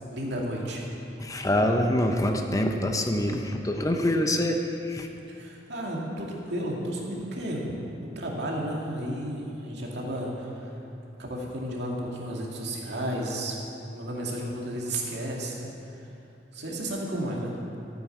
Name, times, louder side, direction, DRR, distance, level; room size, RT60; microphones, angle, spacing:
voice 1, 0.1-0.8 5.3-10.7 11.2-13.6 13.9-15.7 16.0-16.1 16.5-17.6, right 1 dB, 65° right, -2 dB, 2.4 m, -33 dB
voice 2, 1.2-5.1, left 1 dB, 20° left, 4 dB, 0.7 m, -25 dB
13.5 x 9.2 x 7.2 m, 2.8 s
head